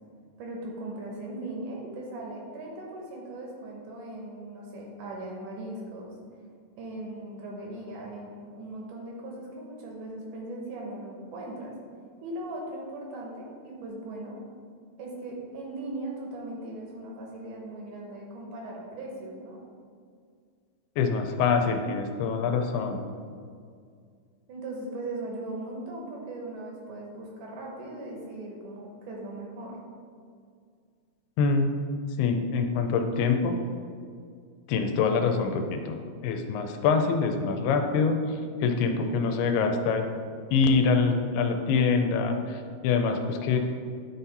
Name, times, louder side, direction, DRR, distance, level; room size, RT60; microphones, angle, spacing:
voice 1, 0.4-6.1 6.8-11.7 12.2-14.4 15.0-19.6 24.5-29.8, right 2 dB, 70° right, -1 dB, 2.1 m, -39 dB
voice 2, 21.0-23.0 31.4-31.7 32.2-33.6 34.7-40.1 40.5-43.6, left 5 dB, 85° left, 5 dB, 2.6 m, -25 dB
10.0 x 4.1 x 4.0 m, 2.2 s
omnidirectional pair, 4.5 m